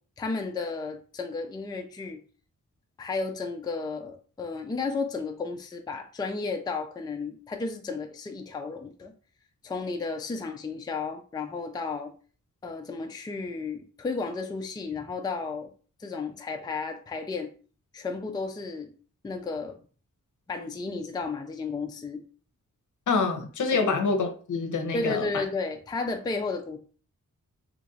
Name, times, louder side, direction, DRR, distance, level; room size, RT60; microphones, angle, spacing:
voice 1, 0.2-2.2 3.0-9.1 9.6-12.1 12.6-15.7 16.0-17.5 17.9-18.9 19.2-19.8 20.5-22.2 23.7-23.9 24.9-26.8, left 4 dB, 15° left, 4 dB, 0.3 m, -33 dB
voice 2, 23.1-25.4, left 4 dB, 70° left, 5 dB, 0.7 m, -26 dB
2.9 x 2.4 x 4.0 m, 0.40 s
wide cardioid pair, 135°, 31 cm